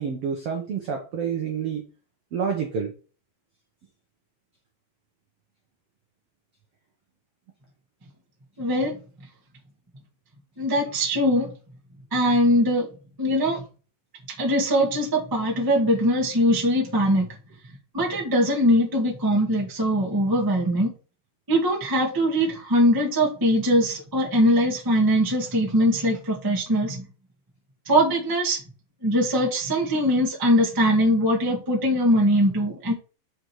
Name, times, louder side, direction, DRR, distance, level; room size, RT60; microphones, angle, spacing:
voice 1, 0.0-1.8 2.3-2.9, right 6 dB, 80° right, 3 dB, 1.3 m, -28 dB
voice 2, 8.6-9.0 10.6-11.5 12.1-12.9 13.2-13.6 14.4-17.3 17.9-20.9 21.5-27.1 27.8-28.6 29.0-32.9, equal, 20° right, -3 dB, 0.5 m, -21 dB
5.2 x 5.1 x 4.5 m, 0.36 s
omnidirectional pair, 4.2 m